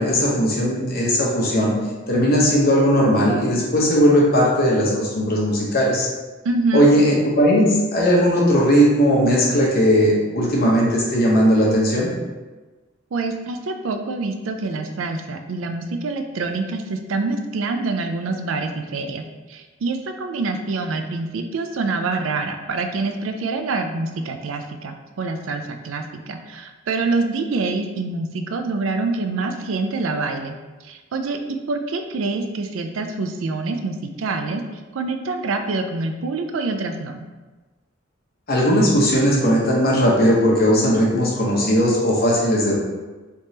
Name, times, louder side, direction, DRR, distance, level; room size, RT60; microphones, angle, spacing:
voice 1, 0.0-1.7 2.1-6.1 6.7-12.1 38.5-42.7, equal, 50° left, -4 dB, 0.9 m, -17 dB
voice 2, 6.4-6.9 13.1-19.2 19.5-30.5 30.8-31.4 31.7-34.6 34.9-37.2, right 3 dB, 85° right, 6 dB, 0.4 m, -26 dB
3.4 x 3.2 x 2.8 m, 1.2 s
head